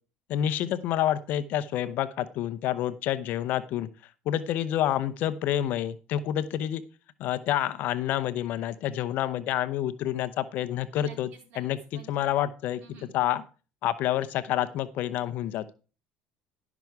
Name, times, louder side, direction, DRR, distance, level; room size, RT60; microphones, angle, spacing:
voice 1, 0.3-3.9 4.3-6.8 7.2-11.3 11.6-12.8 13.1-13.4 13.8-15.6, left 12 dB, 60° left, 13 dB, 0.8 m, -28 dB
voice 2, 10.9-11.6 11.9-12.4 12.8-13.1, right 2 dB, 60° right, 1 dB, 3.9 m, -51 dB
12.0 x 6.1 x 4.7 m, 0.35 s
supercardioid pair, 105°, 3 cm